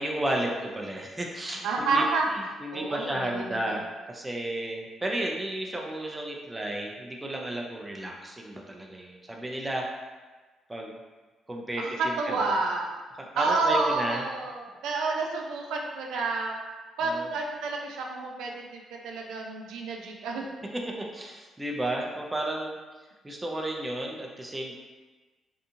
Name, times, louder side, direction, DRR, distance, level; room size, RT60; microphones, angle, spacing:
voice 1, 0.0-2.0 2.3-9.8 10.7-10.9 11.5-12.5 13.3-14.2 17.0-17.3 20.7-22.8 23.2-24.8, right 1 dB, 15° right, 0 dB, 0.4 m, -33 dB
voice 2, 1.6-2.3 2.5-3.8 11.8-13.0 13.3-16.6 17.0-20.4, right 3 dB, 85° right, 1 dB, 0.3 m, -29 dB
2.7 x 2.3 x 2.6 m, 1.3 s
cardioid pair, 90°, 0 cm